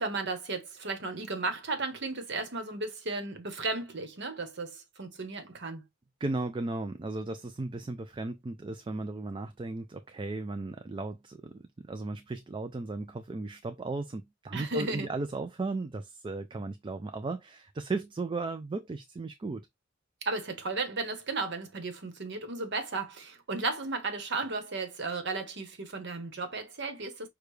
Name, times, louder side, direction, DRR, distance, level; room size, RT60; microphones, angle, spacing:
voice 1, 0.0-5.8 14.5-15.1 20.2-27.3, right 3 dB, 60° right, 1.1 m, -34 dB
voice 2, 6.2-19.7, right 3 dB, 25° right, 0.4 m, -36 dB
6.5 x 2.3 x 3.2 m
head